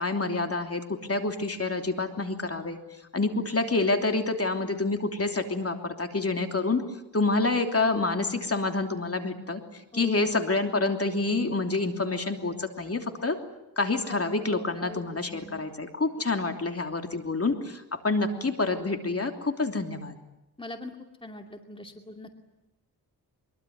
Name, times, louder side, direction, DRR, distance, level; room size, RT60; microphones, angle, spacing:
voice 1, 0.0-2.8 3.1-6.8 7.1-9.6 9.9-13.4 13.8-20.2, left 3 dB, 35° left, 5 dB, 3.1 m, -27 dB
voice 2, 9.9-10.3 14.1-14.2 14.5-15.7 20.6-22.3, left 1 dB, 15° left, 4 dB, 2.5 m, -43 dB
23.5 x 22.5 x 9.5 m, 0.94 s
wide cardioid pair, 85°, 39 cm